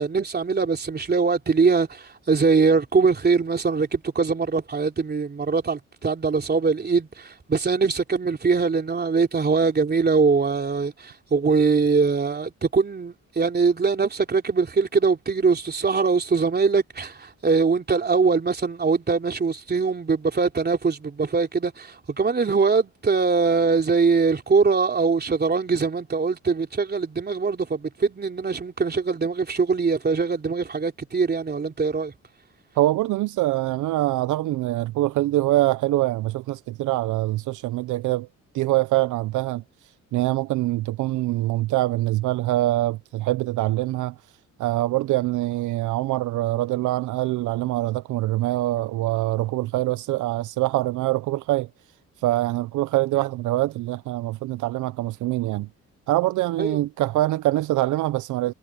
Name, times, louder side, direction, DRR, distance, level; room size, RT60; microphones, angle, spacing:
voice 1, 0.0-32.1 56.6-56.8, right 4 dB, 35° right, 3.5 m, -22 dB
voice 2, 32.8-38.3 38.5-39.6 40.1-44.2 44.6-51.7 52.2-55.7 56.1-58.5, right 17 dB, 80° right, 0.6 m, -24 dB
cardioid pair, 90°, 30 cm